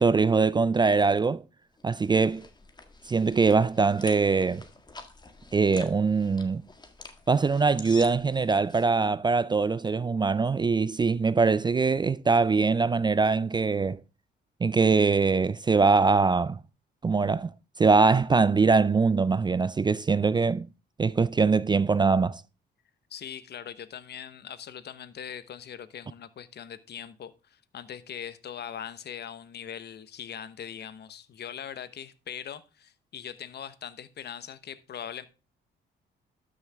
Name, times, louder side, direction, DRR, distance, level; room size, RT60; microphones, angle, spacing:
voice 1, 0.0-1.4 1.8-2.4 3.1-4.6 5.5-6.6 7.3-14.0 14.6-16.6 17.0-17.5 17.8-20.7 21.0-22.4, right 4 dB, 20° right, 0.4 m, -23 dB
sound 1, 1.8-8.9, left 3 dB, 20° left, 1.7 m, -47 dB
voice 2, 23.1-35.3, left 9 dB, 55° left, 1.0 m, -41 dB
12.5 x 6.4 x 3.5 m
cardioid pair, 90°, 20 cm